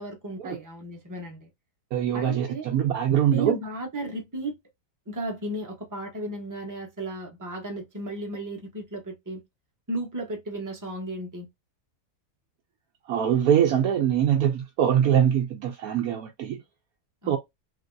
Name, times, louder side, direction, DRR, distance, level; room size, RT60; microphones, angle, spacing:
voice 1, 0.0-1.5 2.1-2.7 3.3-4.5 5.1-9.4 9.9-11.5 17.2-17.4, right 1 dB, 15° right, 0.7 m, -34 dB
voice 2, 1.9-3.6 13.1-16.6 17.3-17.4, right 9 dB, 70° right, 1.0 m, -23 dB
3.3 x 2.9 x 2.5 m
omnidirectional pair, 1.7 m